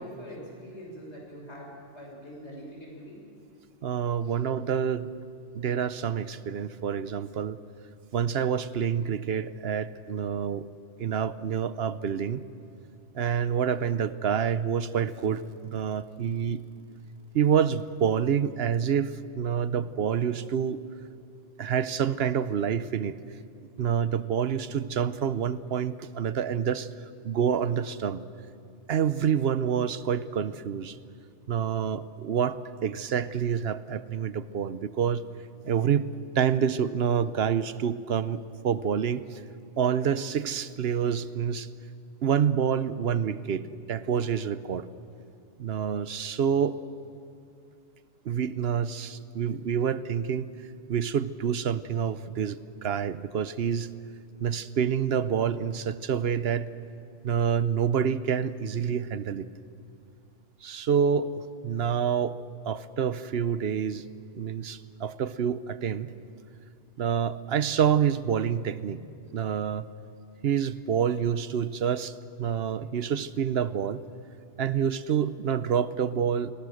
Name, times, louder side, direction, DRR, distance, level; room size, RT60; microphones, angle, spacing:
voice 1, 0.0-3.2 4.2-4.4, equal, 65° left, -3 dB, 6.7 m, -43 dB
voice 2, 3.8-5.1 5.5-7.6 8.1-10.7 11.0-12.4 13.1-16.6 17.3-20.8 21.6-23.1 23.8-26.9 27.2-28.2 28.9-31.0 31.5-35.2 35.6-36.1 36.4-39.4 39.8-41.7 42.2-43.6 43.9-44.9 45.6-46.8 48.2-50.5 50.9-53.9 54.4-56.7 57.2-59.5 60.6-61.3 61.6-62.3 62.7-64.0 64.3-66.1 67.0-69.0 69.3-69.9 70.4-74.0 74.6-76.5, right 8 dB, 60° right, 15 dB, 1.0 m, -27 dB
28.5 x 21.0 x 6.4 m, 2.5 s
omnidirectional pair, 1.2 m